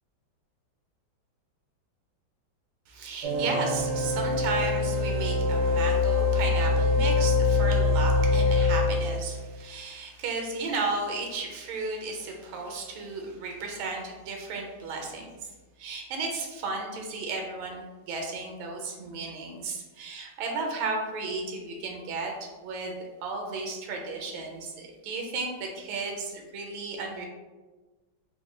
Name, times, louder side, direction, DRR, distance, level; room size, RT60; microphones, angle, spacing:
voice 1, 2.9-15.5 15.8-22.3 22.6-22.9 23.2-27.3, right 3 dB, 85° right, 1 dB, 1.4 m, -34 dB
sound 1, 3.2-9.4, left 3 dB, 70° right, 1.0 m, -24 dB
3.7 x 2.1 x 3.0 m, 1.2 s
omnidirectional pair, 2.2 m